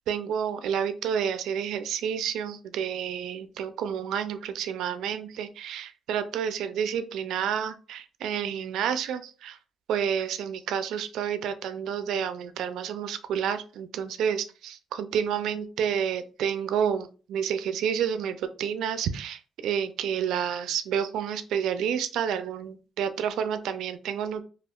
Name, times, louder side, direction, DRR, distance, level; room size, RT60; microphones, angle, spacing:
voice 1, 0.1-9.6 9.9-24.4, right 8 dB, 80° right, 11 dB, 0.3 m, -29 dB
3.4 x 2.3 x 2.3 m, 0.36 s
cardioid pair, 90°, 0 cm